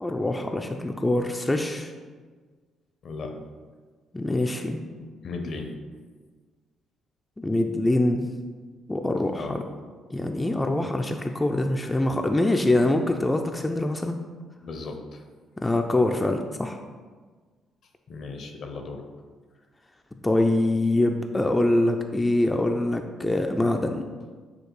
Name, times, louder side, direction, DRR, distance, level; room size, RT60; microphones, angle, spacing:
voice 1, 0.0-1.9 4.1-4.9 7.4-8.3 8.9-9.6 10.1-14.2 15.6-16.8 20.2-24.0, left 1 dB, 20° left, 4 dB, 0.3 m, -24 dB
voice 2, 3.0-3.4 5.2-5.7 9.3-9.6 14.6-15.2 18.1-19.1, left 3 dB, 60° left, 4 dB, 0.6 m, -36 dB
6.4 x 2.3 x 3.1 m, 1.5 s
hypercardioid pair, 55°, 0 cm